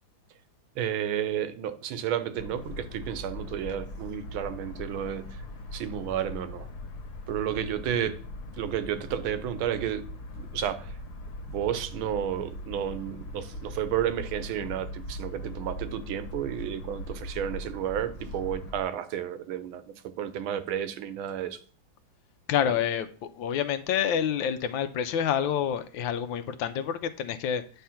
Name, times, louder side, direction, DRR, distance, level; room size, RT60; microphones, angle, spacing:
voice 1, 0.8-5.4 5.7-6.7 7.3-8.2 8.5-10.1 10.3-11.0 11.5-21.6 22.6-22.7, right 10 dB, 80° right, 1.5 m, -32 dB
sound 1, 2.4-18.8, left 1 dB, 55° left, 1.4 m, -40 dB
voice 2, 22.5-27.6, left 9 dB, 75° left, 1.3 m, -28 dB
9.3 x 3.4 x 5.7 m
omnidirectional pair, 2.3 m